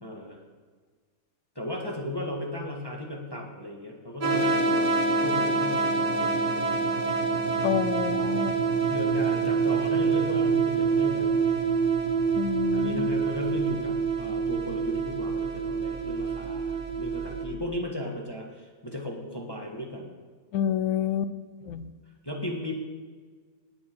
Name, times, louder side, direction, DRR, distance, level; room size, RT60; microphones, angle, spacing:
voice 1, 0.0-0.4 1.5-4.9 5.2-6.9 8.9-11.6 12.7-20.1 21.7-21.8 22.2-22.7, left 1 dB, 15° left, 0 dB, 1.4 m, -36 dB
sound 1, 4.2-17.4, right 5 dB, 30° right, 1.3 m, -26 dB
voice 2, 7.6-8.6 12.3-13.1 20.5-21.3 21.7-21.9, left 9 dB, 70° left, 13 dB, 0.7 m, -28 dB
19.5 x 7.2 x 4.7 m, 1.5 s
omnidirectional pair, 2.1 m